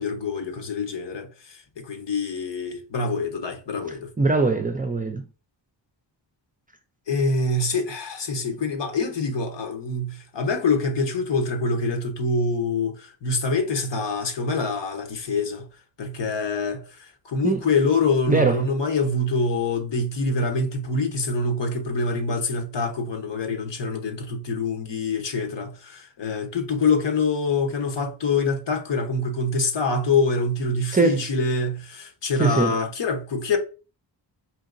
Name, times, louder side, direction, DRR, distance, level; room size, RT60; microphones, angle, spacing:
voice 1, 0.0-4.1 7.1-15.7 16.0-33.6, left 3 dB, 70° left, 1.0 m, -25 dB
voice 2, 4.2-5.3 17.4-17.6 18.3-18.6 30.9-31.2 32.4-32.8, right 3 dB, 20° right, 0.4 m, -21 dB
4.6 x 2.8 x 2.6 m
cardioid pair, 85°, 45 cm